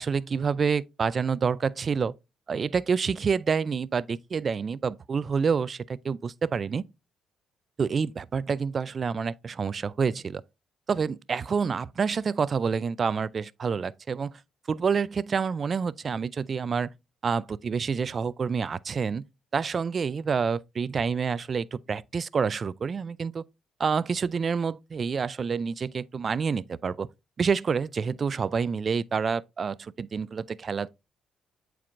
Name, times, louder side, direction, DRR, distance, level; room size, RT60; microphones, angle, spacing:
voice 1, 0.0-2.1 2.5-6.8 7.8-10.4 10.9-14.4 14.7-16.9 17.2-19.2 19.5-23.4 23.8-27.1 27.4-30.9, right 5 dB, 45° right, 0.3 m, -28 dB
8.3 x 4.5 x 2.5 m
cardioid pair, 90°, 0 cm